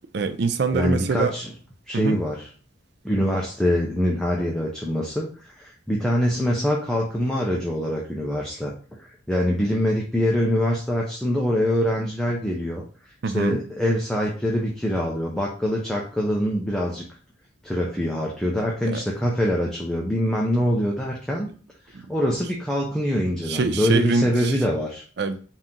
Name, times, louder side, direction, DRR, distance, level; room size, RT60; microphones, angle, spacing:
voice 1, 0.1-1.3 1.9-2.2 13.2-13.6 18.9-19.0 21.9-22.0 23.5-24.6 25.2-25.4, right 4 dB, 55° right, 0.4 m, -24 dB
voice 2, 0.7-1.5 1.9-2.5 3.0-8.7 9.0-12.8 13.3-17.0 17.6-21.5 21.9-25.0, equal, 5° left, 0.5 m, -24 dB
3.7 x 2.8 x 3.6 m
head